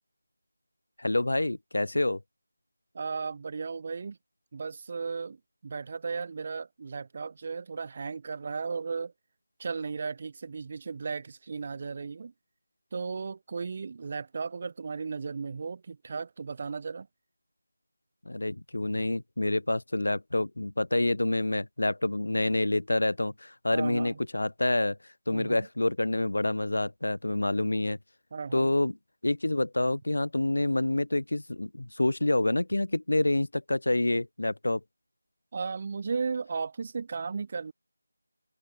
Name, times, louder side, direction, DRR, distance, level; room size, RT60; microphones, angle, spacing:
voice 1, 1.0-2.2 18.3-25.0 25.3-28.0 28.5-28.9 29.2-34.8, left 2 dB, 75° left, 0.5 m, -27 dB
voice 2, 2.9-4.2 4.5-5.4 5.6-9.1 9.6-12.3 12.9-17.1 23.7-24.2 25.3-25.7 28.3-28.7 35.5-37.7, right 5 dB, 35° right, 0.4 m, -35 dB
figure-of-eight pair, 170°, 0 cm